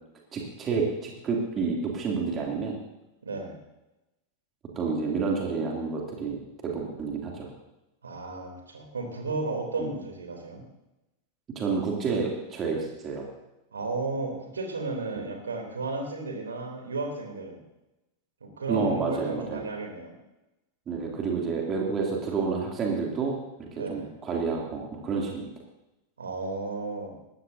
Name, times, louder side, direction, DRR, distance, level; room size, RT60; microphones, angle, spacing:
voice 1, 0.3-2.8 4.8-6.4 6.6-7.5 9.8-9.9 11.5-13.3 18.7-19.6 20.9-23.3 23.7-25.5, right 4 dB, 25° right, -1 dB, 2.7 m, -29 dB
voice 2, 3.2-3.6 8.0-10.6 13.7-17.6 18.4-20.1 23.8-24.1 26.2-27.1, right 3 dB, 70° right, 2 dB, 3.1 m, -33 dB
19.5 x 14.0 x 2.7 m, 0.95 s
figure-of-eight pair, 90°, 0 cm